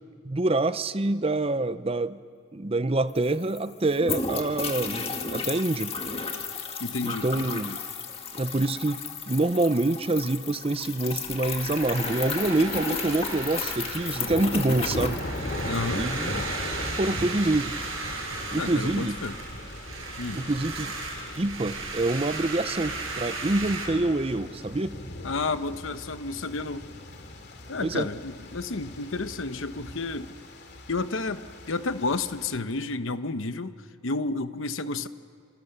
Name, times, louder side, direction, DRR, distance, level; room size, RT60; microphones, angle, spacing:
voice 1, 0.2-2.2 2.5-5.9 7.0-7.7 8.3-15.2 16.0-16.5 17.0-17.8 18.5-19.2 20.4-20.9 21.4-24.9 27.8-28.1, right 2 dB, 25° right, 13 dB, 0.6 m, -26 dB
sound 1, 2.8-2.9 3.1-15.9, left 4 dB, 25° left, 1.8 m, -33 dB
voice 2, 6.8-7.8 15.7-16.0 18.5-19.4 20.2-20.4 25.2-26.8 27.7-30.3 30.9-35.1, left 3 dB, 65° left, 11 dB, 1.0 m, -31 dB
sound 2, 11.3-23.9, right 3 dB, 70° right, 5.8 m, -36 dB
sound 3, 12.7-32.6, left 1 dB, 50° left, 2.6 m, -39 dB
28.0 x 27.5 x 6.8 m, 2.4 s
head